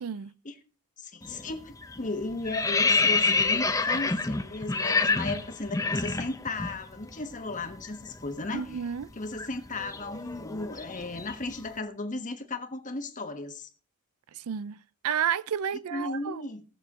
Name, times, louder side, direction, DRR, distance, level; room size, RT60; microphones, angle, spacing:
voice 1, 0.0-0.3 8.5-9.1 14.4-14.8 15.0-16.4, right 8 dB, 80° right, 0.4 m, -31 dB
voice 2, 1.0-8.8 9.1-13.7 15.9-16.6, left 2 dB, 35° left, 1.3 m, -35 dB
sound 1, 1.2-1.5 1.8-6.8 7.0-7.2 7.5-11.6, left 3 dB, 15° left, 0.8 m, -28 dB
18.5 x 6.9 x 3.7 m
head